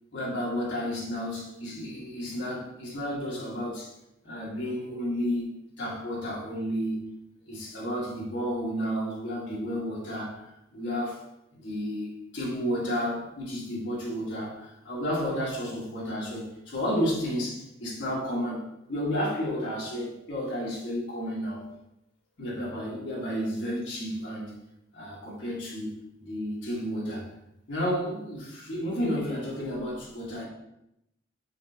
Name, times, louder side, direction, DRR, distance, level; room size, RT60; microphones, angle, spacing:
voice 1, 0.1-3.9 4.2-7.1 7.5-10.4 10.7-11.2 11.5-21.6 22.4-24.5 24.9-27.3 27.7-30.5, equal, 70° left, -5 dB, 1.4 m, -32 dB
4.9 x 3.2 x 2.7 m, 0.83 s
head